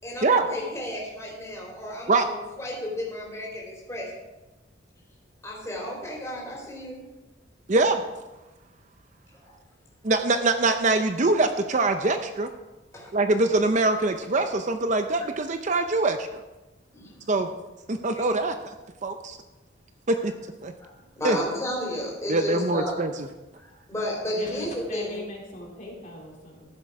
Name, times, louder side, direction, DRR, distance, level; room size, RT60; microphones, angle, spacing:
voice 1, 0.0-4.1 5.4-7.0 9.4-9.5 12.9-13.1 16.9-17.1 18.1-18.2 20.8-20.9 21.2-22.9 23.6-25.2, left 1 dB, 15° left, -3 dB, 3.8 m, -33 dB
voice 2, 7.7-8.0 10.0-12.5 13.1-16.4 17.3-17.5 17.9-18.6 19.0-19.4 20.1-20.3 20.6-20.7 21.2-21.4 22.3-23.1, right 3 dB, 40° right, 7 dB, 0.6 m, -23 dB
voice 3, 24.3-26.8, left 1 dB, 40° left, -1 dB, 2.7 m, -39 dB
14.5 x 7.5 x 4.8 m, 1.1 s
head